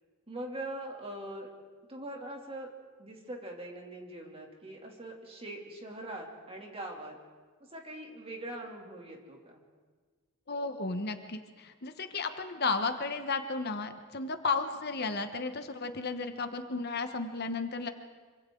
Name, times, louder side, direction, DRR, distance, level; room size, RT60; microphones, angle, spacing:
voice 1, 0.3-1.5 1.9-2.7 3.0-7.2 7.7-9.6, right 1 dB, 30° right, 0 dB, 2.9 m, -42 dB
voice 2, 10.5-17.9, left 4 dB, 50° left, 7 dB, 1.2 m, -33 dB
26.0 x 25.5 x 3.9 m, 1.5 s
head